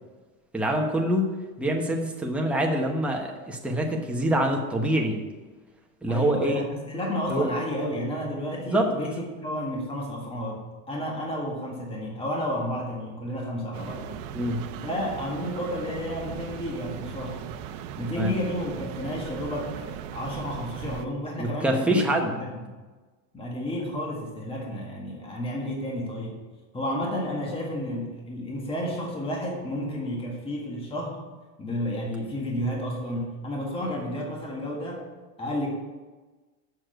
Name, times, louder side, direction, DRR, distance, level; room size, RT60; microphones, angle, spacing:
voice 1, 0.5-1.3 1.6-5.2 6.0-6.6 7.3-7.5 8.7-8.9 14.3-14.6 18.2-18.3 21.4-22.3, right 1 dB, 5° right, 0 dB, 1.1 m, -25 dB
voice 2, 6.1-14.2 14.8-17.4 18.0-22.7 23.3-26.4 26.7-31.2 31.6-35.1 35.4-35.7, equal, 15° left, -1 dB, 1.7 m, -31 dB
sound 1, 13.7-21.1, right 10 dB, 65° right, 0.8 m, -38 dB
7.3 x 6.4 x 7.7 m, 1.3 s
supercardioid pair, 150°, 42 cm